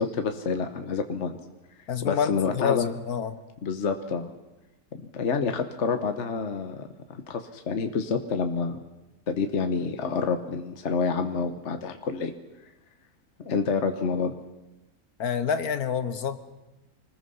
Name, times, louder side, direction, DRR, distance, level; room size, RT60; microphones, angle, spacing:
voice 1, 0.0-1.4 2.0-2.9 3.6-4.3 4.9-8.8 9.3-12.3 13.4-14.3, left 5 dB, 55° left, 7 dB, 1.3 m, -28 dB
voice 2, 1.9-3.3 15.2-16.4, left 7 dB, 85° left, 11 dB, 1.7 m, -27 dB
25.5 x 20.0 x 5.6 m, 1.0 s
omnidirectional pair, 1.6 m